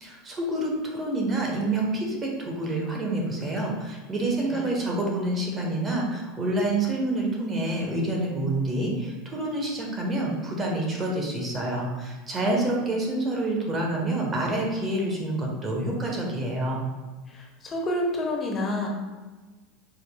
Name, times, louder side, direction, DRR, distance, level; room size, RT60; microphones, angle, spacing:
voice 1, 0.0-16.8, right 2 dB, 25° right, -1 dB, 1.0 m, -27 dB
voice 2, 17.3-18.9, left 1 dB, 25° left, 0 dB, 0.8 m, -29 dB
4.9 x 4.1 x 2.2 m, 1.3 s
supercardioid pair, 125°, 0 cm